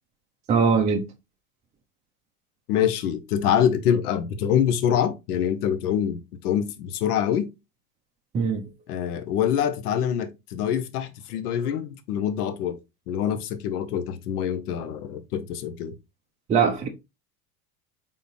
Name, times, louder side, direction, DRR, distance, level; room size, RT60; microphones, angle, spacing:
voice 1, 0.5-1.1 8.3-8.7 16.5-16.9, right 6 dB, 15° right, 0.4 m, -21 dB
voice 2, 2.7-7.5 8.9-12.8 13.1-15.9, left 9 dB, 70° left, 0.9 m, -25 dB
3.8 x 3.7 x 2.5 m
hypercardioid pair, 95°, 47 cm